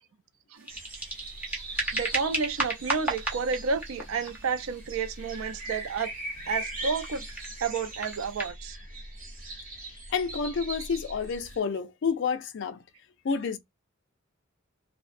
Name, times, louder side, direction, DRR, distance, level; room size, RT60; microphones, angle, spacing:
sound 1, 0.6-8.5, right 1 dB, 10° right, 0.6 m, -36 dB
sound 2, 0.7-11.6, right 2 dB, 40° right, 0.8 m, -41 dB
voice 1, 1.9-6.1 6.4-7.3 7.6-8.8, right 5 dB, 80° right, 0.4 m, -31 dB
voice 2, 9.8-12.8 13.2-13.6, left 5 dB, 60° left, 0.4 m, -29 dB
2.5 x 2.0 x 2.4 m
head